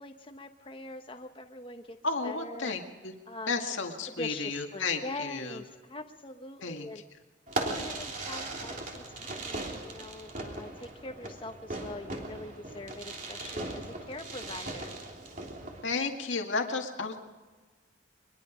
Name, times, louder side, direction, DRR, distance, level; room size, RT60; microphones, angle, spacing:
voice 1, 0.0-2.0 2.2-2.8 3.3-3.5 4.2-7.0 7.6-15.0, left 2 dB, 25° left, 5 dB, 1.1 m, -43 dB
voice 2, 2.0-3.1 3.5-5.6 6.6-6.9 15.8-17.2, left 4 dB, 85° left, 3 dB, 2.0 m, -32 dB
Fireworks, 7.5-15.8, right 2 dB, 45° right, 3.4 m, -38 dB
23.5 x 21.5 x 5.1 m, 1.3 s
head